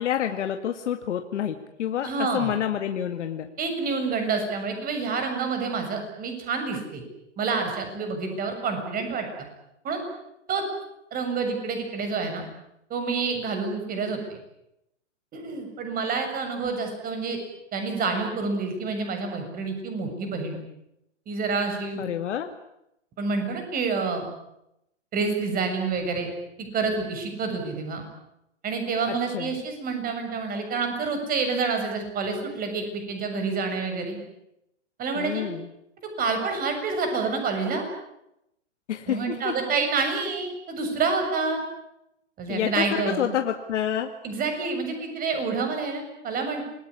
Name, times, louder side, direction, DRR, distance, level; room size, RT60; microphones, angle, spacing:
voice 1, 0.0-3.5 22.0-22.5 29.0-29.6 35.2-35.7 38.9-39.5 42.5-44.1, left 10 dB, 70° left, 6 dB, 2.2 m, -28 dB
voice 2, 2.0-2.5 3.6-7.0 7.4-9.3 9.8-10.0 10.5-10.6 11.1-12.4 12.9-14.4 15.3-17.4 17.7-20.6 21.3-22.0 23.2-24.3 25.1-26.3 26.6-28.0 28.6-34.2 35.0-35.5 36.2-37.9 39.1-41.6 42.4-43.3 44.2-46.7, right 4 dB, 25° right, 6 dB, 7.2 m, -28 dB
27.5 x 20.5 x 9.8 m, 0.85 s
hypercardioid pair, 135°, 37 cm